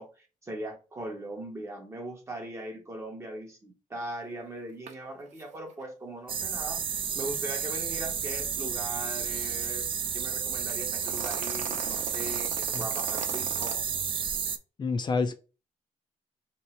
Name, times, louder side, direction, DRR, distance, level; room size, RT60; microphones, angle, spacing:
voice 1, 0.0-6.8 7.1-9.9 10.1-13.8, right 1 dB, 20° right, 0.8 m, -39 dB
sound 1, 4.9-5.0 5.3-5.4 5.7-5.8 10.7-13.7, right 6 dB, 60° right, 0.7 m, -40 dB
sound 2, 6.3-14.6, right 7 dB, 40° right, 0.3 m, -31 dB
voice 2, 14.8-15.4, left 4 dB, 35° left, 0.5 m, -28 dB
3.2 x 3.0 x 4.3 m
wide cardioid pair, 175°, 13 cm